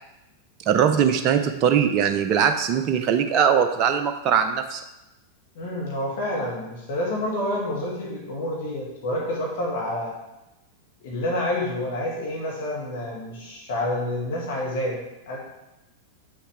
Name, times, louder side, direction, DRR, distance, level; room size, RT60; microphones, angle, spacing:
voice 1, 0.7-4.8, right 8 dB, 35° right, 7 dB, 0.5 m, -21 dB
voice 2, 5.5-10.2 11.0-15.0 15.3-15.4, left 1 dB, 55° left, -3 dB, 1.6 m, -28 dB
8.0 x 5.7 x 3.4 m, 0.96 s
figure-of-eight pair, 90°, 0 cm